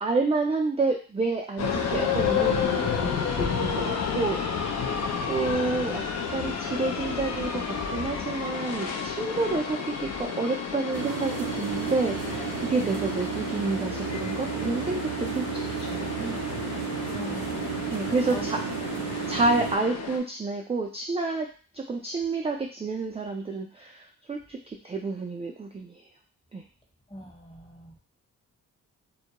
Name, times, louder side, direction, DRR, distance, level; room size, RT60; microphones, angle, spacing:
voice 1, 0.0-4.4 5.3-6.0 6.3-16.4 17.9-18.6 19.3-21.5 21.7-24.6 24.8-26.0 26.5-26.6, right 3 dB, 20° right, 1 dB, 0.3 m, -29 dB
sound 1, 1.6-20.2, left 6 dB, 45° left, 0.5 m, -31 dB
voice 2, 4.8-5.2 12.8-13.0 17.1-17.9 18.3-18.5 27.1-28.0, left 1 dB, 15° left, -1 dB, 0.9 m, -42 dB
sound 2, 10.9-19.8, right 10 dB, 75° right, 0.5 m, -33 dB
2.2 x 2.1 x 2.8 m, 0.38 s
supercardioid pair, 50°, 35 cm